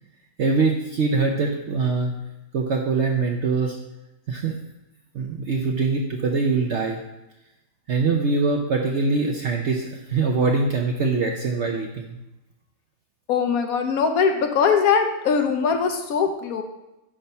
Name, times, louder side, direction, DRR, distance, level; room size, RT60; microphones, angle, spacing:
voice 1, 0.4-2.1 2.5-3.8 4.3-4.6 5.1-7.0 7.9-12.2, right 4 dB, 60° right, 1 dB, 0.7 m, -23 dB
voice 2, 13.3-16.6, left 6 dB, 70° left, 6 dB, 1.0 m, -21 dB
8.5 x 3.0 x 5.5 m, 0.96 s
omnidirectional pair, 1.7 m